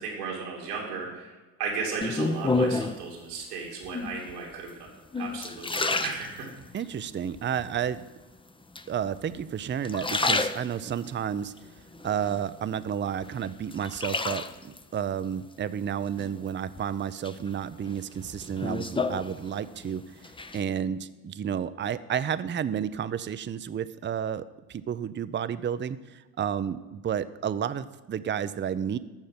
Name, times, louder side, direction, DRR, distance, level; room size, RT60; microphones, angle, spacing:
voice 1, 0.0-1.3 1.6-6.5, right 5 dB, 90° right, -2 dB, 2.8 m, -35 dB
sound 1, 2.0-3.1 3.8-4.3 4.9-6.8 7.3-7.9 8.8-9.4 9.8-11.1 11.6-12.8 13.2-14.8 16.2-16.8 17.2-19.9 20.1-20.6, left 3 dB, 10° left, 0.7 m, -30 dB
voice 2, 6.7-8.0 8.9-11.5 12.0-20.0 20.5-29.0, right 8 dB, 25° right, 14 dB, 0.6 m, -31 dB
14.5 x 6.4 x 5.9 m, 1.2 s
hypercardioid pair, 55°, 45 cm